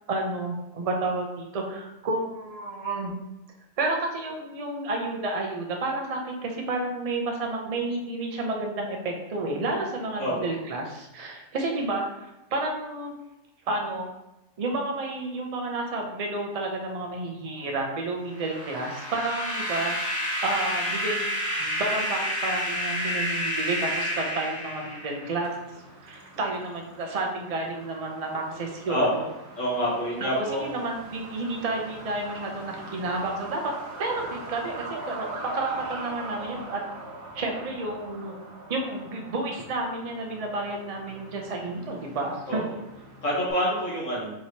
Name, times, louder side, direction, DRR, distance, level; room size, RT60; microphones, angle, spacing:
voice 1, 0.1-3.1 3.8-13.1 13.7-14.1 14.6-21.2 21.6-25.6 26.0-29.2 30.2-33.7 34.0-35.3 35.5-36.8 37.3-38.3 38.7-42.7, right 2 dB, 45° right, 1 dB, 0.5 m, -31 dB
sound 1, 18.3-25.3, equal, 5° left, 1.0 m, -29 dB
Truck, 23.5-43.5, right 2 dB, 75° right, 1.2 m, -42 dB
voice 2, 28.9-29.3 29.6-30.8 42.5-42.6 43.2-44.3, equal, 65° left, -7 dB, 1.7 m, -27 dB
4.6 x 3.0 x 2.8 m, 0.94 s
omnidirectional pair, 1.4 m